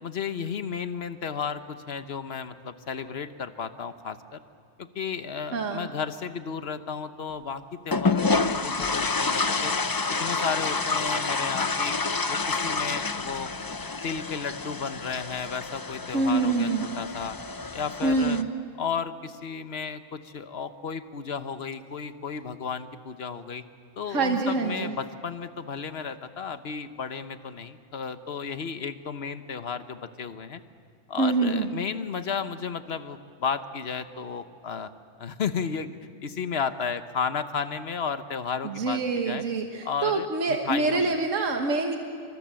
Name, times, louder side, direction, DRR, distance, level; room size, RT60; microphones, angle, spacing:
voice 1, 0.0-4.4 4.8-9.7 10.2-12.0 12.3-13.5 14.0-17.4 17.7-18.4 18.8-23.6 24.0-30.6 31.1-34.9 35.2-35.9 36.2-39.4 39.8-41.2, left 6 dB, 55° left, 11 dB, 1.2 m, -33 dB
voice 2, 5.5-5.9 16.1-16.9 18.0-18.5 24.1-25.0 31.2-31.7 38.6-42.0, right 3 dB, 80° right, 4 dB, 1.8 m, -25 dB
sound 1, 7.9-18.4, left 4 dB, 30° left, 0.4 m, -28 dB
26.5 x 25.0 x 7.6 m, 2.2 s
omnidirectional pair, 1.3 m